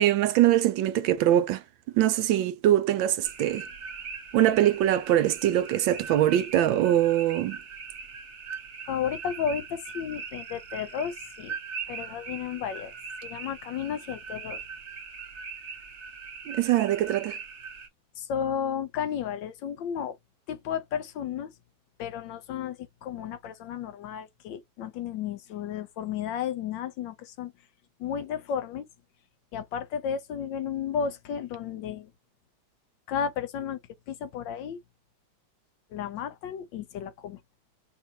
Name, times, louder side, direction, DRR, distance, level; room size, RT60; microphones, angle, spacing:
voice 1, 0.0-1.6 1.9-3.7 4.3-7.6 16.5-17.4, right 12 dB, 75° right, 1.3 m, -23 dB
sound 1, 3.2-17.9, right 5 dB, 50° right, 0.9 m, -41 dB
voice 2, 8.9-11.5 11.9-12.9 13.2-14.6 18.2-20.2 20.5-21.5 22.0-27.5 28.0-28.9 29.5-32.1 33.1-33.8 34.1-34.8 35.9-37.4, left 8 dB, 75° left, 1.2 m, -33 dB
4.9 x 2.6 x 2.7 m
omnidirectional pair, 2.2 m